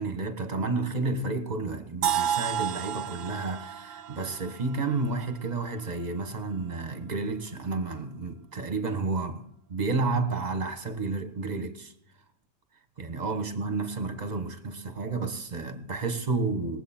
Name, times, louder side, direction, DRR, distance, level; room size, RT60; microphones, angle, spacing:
voice 1, 0.0-11.9 13.0-16.8, right 3 dB, 35° right, 1.4 m, -31 dB
sound 1, 2.0-5.9, right 10 dB, 80° right, 1.1 m, -32 dB
21.0 x 8.0 x 4.3 m
omnidirectional pair, 1.4 m